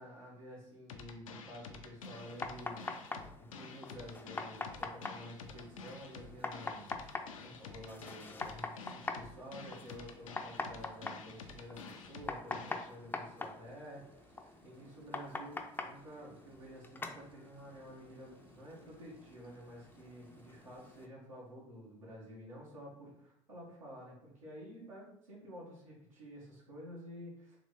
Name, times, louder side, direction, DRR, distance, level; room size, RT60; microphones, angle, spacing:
voice 1, 0.0-6.9 7.4-27.6, equal, 80° right, -5 dB, 1.4 m, -51 dB
sound 1, 0.9-12.9, left 5 dB, 80° left, 0.5 m, -50 dB
sound 2, 2.0-21.1, left 3 dB, 10° left, 0.4 m, -45 dB
sound 3, 5.6-21.1, right 2 dB, 35° right, 0.9 m, -66 dB
3.7 x 3.1 x 3.9 m, 0.75 s
figure-of-eight pair, 65°, 17 cm